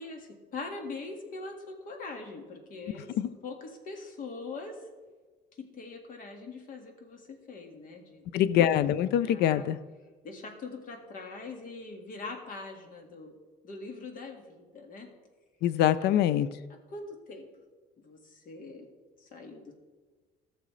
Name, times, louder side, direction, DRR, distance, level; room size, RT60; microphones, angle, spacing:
voice 1, 0.0-4.8 5.6-8.2 9.3-9.7 10.2-13.4 13.6-15.1 16.0-16.1 16.9-17.5 18.0-18.9 19.2-19.7, left 3 dB, 55° left, 3 dB, 1.8 m, -42 dB
voice 2, 8.3-9.8 15.6-16.5, left 11 dB, 75° left, 16 dB, 0.5 m, -24 dB
14.5 x 6.7 x 3.2 m, 1.3 s
cardioid pair, 110°, 17 cm